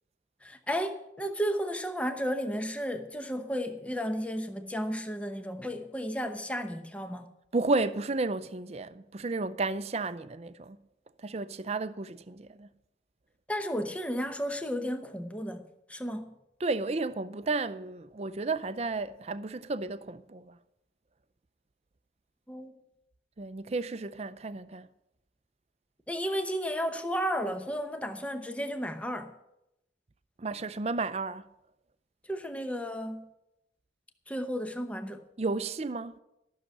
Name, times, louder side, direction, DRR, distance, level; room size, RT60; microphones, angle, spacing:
voice 1, 0.4-7.3 13.5-15.6 15.9-16.3 22.5-22.8 26.1-29.3 32.3-33.3 34.3-35.2, equal, 5° left, 0.8 m, -33 dB
voice 2, 7.5-10.8 11.2-12.7 16.6-20.6 23.4-24.9 30.4-31.4 35.4-36.1, right 3 dB, 35° right, 0.5 m, -32 dB
14.0 x 6.6 x 8.8 m
head